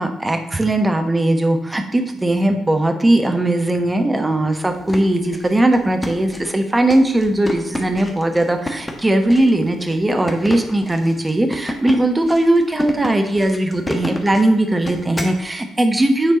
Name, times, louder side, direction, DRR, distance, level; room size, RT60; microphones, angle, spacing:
voice 1, 0.0-16.3, right 1 dB, 15° right, 5 dB, 1.2 m, -18 dB
sound 1, 4.7-15.4, left 1 dB, 20° left, 1.3 m, -30 dB
9.1 x 4.4 x 3.9 m, 0.91 s
figure-of-eight pair, 45°, 0 cm